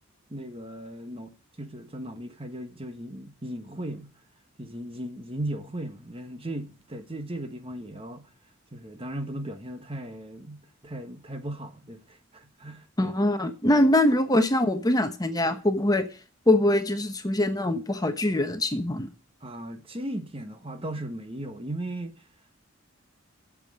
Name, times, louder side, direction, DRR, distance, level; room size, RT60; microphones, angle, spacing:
voice 1, 0.3-1.3 1.6-4.1 4.6-8.3 8.7-13.1 19.4-22.1, right 1 dB, 30° right, 1.3 m, -37 dB
voice 2, 13.0-16.0 16.5-19.1, left 1 dB, 20° left, 1.1 m, -23 dB
8.8 x 7.5 x 8.8 m
head